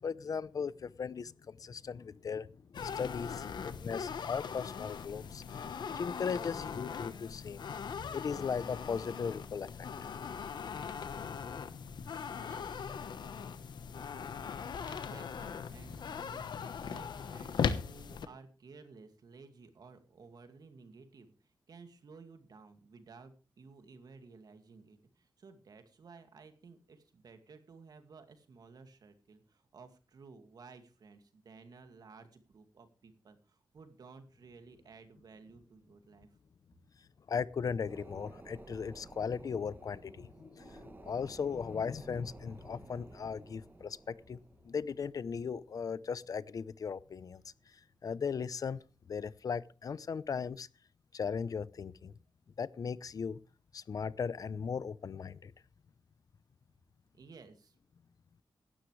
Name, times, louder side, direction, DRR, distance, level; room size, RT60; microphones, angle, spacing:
voice 1, 0.0-2.5 2.8-7.7 8.1-9.7 37.3-44.4 44.6-47.4 48.0-48.8 49.1-50.7 51.1-52.1 52.6-53.4 53.7-55.5, left 6 dB, 55° left, 0.7 m, -37 dB
sound 1, 2.7-18.3, left 6 dB, 80° left, 1.1 m, -40 dB
voice 2, 12.2-12.9 14.4-36.3 57.1-57.8, right 4 dB, 60° right, 2.2 m, -55 dB
sound 2, 37.9-47.9 48.3-48.4, right 3 dB, 25° right, 1.0 m, -55 dB
17.0 x 12.5 x 3.3 m
wide cardioid pair, 140°, 7 cm